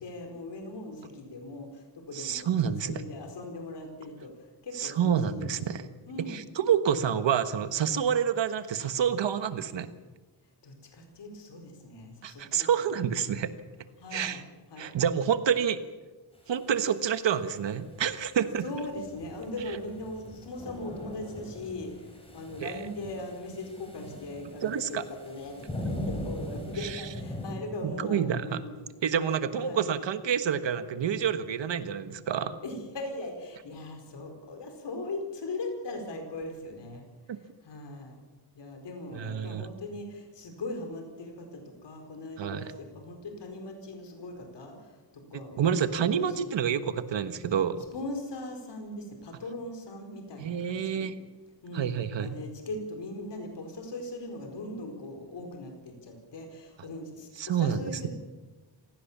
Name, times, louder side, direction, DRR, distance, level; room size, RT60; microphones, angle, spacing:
voice 1, 0.0-4.3 4.6-5.6 6.1-6.4 10.6-13.3 14.0-14.4 14.7-14.9 18.6-28.9 29.6-29.9 32.6-37.0 37.6-38.2 38.5-46.5 47.9-51.1 51.6-51.9 52.2-58.1, left 2 dB, 65° left, 4 dB, 4.6 m, -40 dB
voice 2, 2.1-3.0 4.8-5.8 6.3-9.9 12.2-13.5 14.1-14.4 14.8-15.8 16.5-18.6 22.6-22.8 24.6-25.0 26.8-27.0 27.8-28.6 29.0-32.6 37.3-37.4 39.1-39.7 42.4-42.7 45.6-47.8 50.4-51.1 51.7-52.3 57.4-57.8, right 8 dB, 70° right, 11 dB, 1.5 m, -28 dB
sound 1, 17.8-27.5, left 1 dB, 10° left, 4.4 m, -40 dB
26.5 x 17.0 x 7.3 m, 1.2 s
wide cardioid pair, 165°, 45 cm